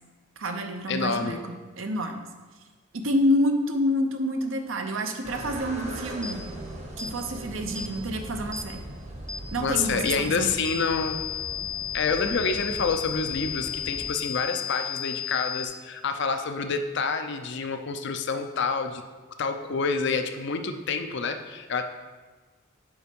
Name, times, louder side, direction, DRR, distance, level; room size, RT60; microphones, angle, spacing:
voice 1, 0.4-2.2 2.9-6.5 7.0-8.8 9.5-10.5, equal, 70° right, 5 dB, 0.8 m, -28 dB
voice 2, 0.9-1.4 9.6-11.2 11.9-19.0 19.4-21.8, left 5 dB, 55° left, 7 dB, 0.6 m, -28 dB
sound 1, 5.2-14.2, right 1 dB, 30° right, 1.0 m, -40 dB
sound 2, 6.2-6.4 7.0-7.2 7.8-7.9 8.5-8.7 9.3-9.4 10.1-10.2 10.7-15.7, left 10 dB, 5° left, 0.4 m, -33 dB
7.0 x 5.3 x 5.3 m, 1.3 s
head